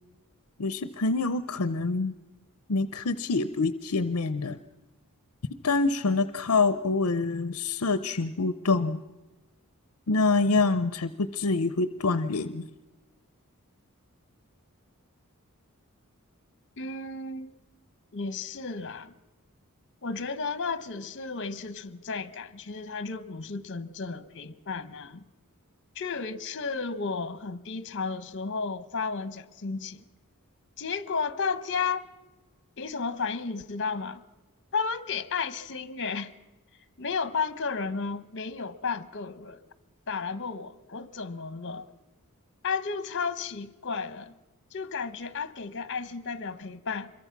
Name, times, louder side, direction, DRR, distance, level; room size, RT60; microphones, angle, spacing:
voice 1, 0.6-2.1 2.7-4.6 5.6-9.0 10.1-12.6, left 3 dB, 70° left, 0.7 m, -26 dB
voice 2, 16.8-17.5 18.1-19.1 20.0-25.2 25.9-30.0 30.8-32.1 32.8-34.2 34.7-36.3 37.0-39.6 40.1-41.9 42.6-44.3 44.7-47.1, left 5 dB, 55° left, 1.1 m, -33 dB
25.5 x 22.5 x 5.9 m
head